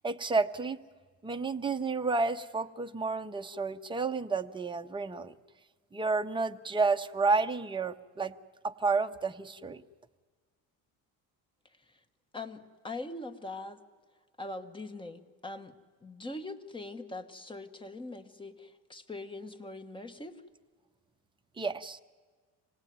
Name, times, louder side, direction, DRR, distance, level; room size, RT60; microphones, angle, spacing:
voice 1, 0.0-0.8 1.2-5.3 5.9-8.3 8.6-9.8 21.6-22.0, right 4 dB, 15° right, 7 dB, 0.7 m, -30 dB
voice 2, 12.3-13.8 14.4-15.7 16.0-20.4, left 2 dB, 15° left, 6 dB, 1.3 m, -42 dB
25.5 x 18.0 x 9.4 m, 1.5 s
cardioid pair, 130°, 38 cm